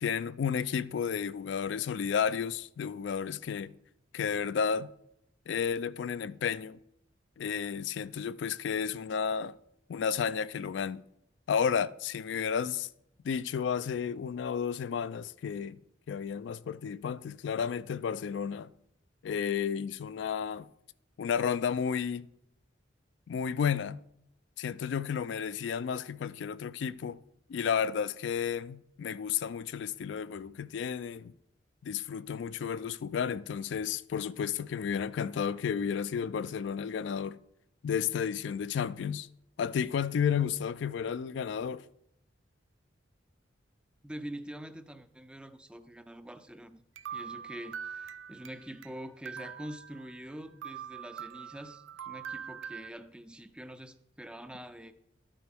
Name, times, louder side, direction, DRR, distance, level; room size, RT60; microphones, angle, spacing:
voice 1, 0.0-3.7 4.1-4.9 5.5-6.8 7.4-9.6 9.9-11.0 11.5-12.9 13.2-15.8 16.1-18.7 19.2-20.7 21.2-22.3 23.3-24.0 24.6-27.2 27.5-31.3 31.8-37.4 37.8-39.3 39.6-41.8, left 7 dB, 70° left, 0.3 m, -32 dB
voice 2, 44.0-46.8 47.1-54.9, equal, 5° right, 0.4 m, -45 dB
sound 1, 47.0-48.9 49.3-50.3 50.6-52.9, right 8 dB, 85° right, 0.5 m, -43 dB
12.0 x 9.1 x 3.5 m
head